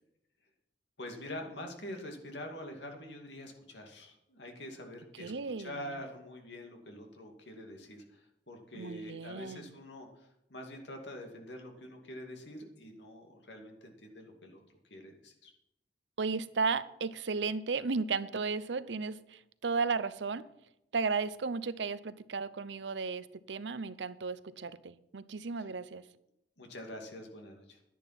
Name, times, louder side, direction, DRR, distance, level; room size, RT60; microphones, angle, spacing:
voice 1, 1.0-14.6 14.9-15.5 25.6-25.7 26.6-27.8, left 1 dB, 80° left, 2.5 m, -45 dB
voice 2, 5.2-5.8 8.7-9.7 16.2-20.5 20.9-26.0, right 4 dB, 85° right, 0.7 m, -34 dB
11.0 x 10.0 x 5.9 m
head